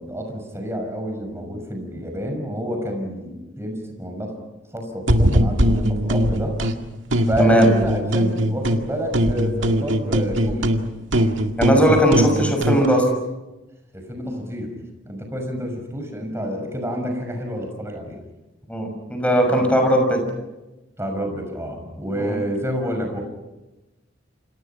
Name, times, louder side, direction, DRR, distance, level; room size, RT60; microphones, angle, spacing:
voice 1, 0.0-4.3 4.7-6.5 7.3-10.9 11.9-12.5 13.9-14.7 15.1-18.2 21.0-23.2, equal, 15° right, 3 dB, 6.0 m, -29 dB
sound 1, 5.1-6.8 7.1-8.9 9.1-12.9, equal, 80° right, 2.0 m, -21 dB
voice 2, 11.6-13.0 18.7-20.2 22.2-22.4, equal, 5° left, 4 dB, 6.1 m, -18 dB
29.0 x 26.5 x 5.9 m, 1.0 s
head